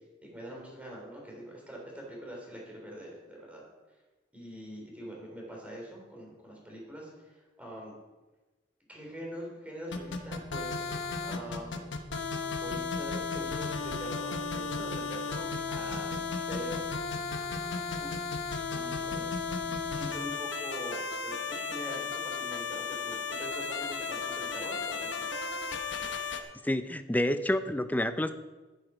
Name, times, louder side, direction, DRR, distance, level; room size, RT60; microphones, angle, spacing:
voice 1, 0.2-3.6 4.3-7.9 8.9-11.9 12.6-16.8 17.1-17.3 18.0-18.2 18.7-19.3 19.6-25.3, equal, 10° right, -2 dB, 3.6 m, -44 dB
sound 1, 9.9-26.4, left 4 dB, 70° left, 1.1 m, -34 dB
voice 2, 26.6-28.3, left 1 dB, 10° left, 11 dB, 0.5 m, -28 dB
11.5 x 9.2 x 5.0 m, 1.2 s
head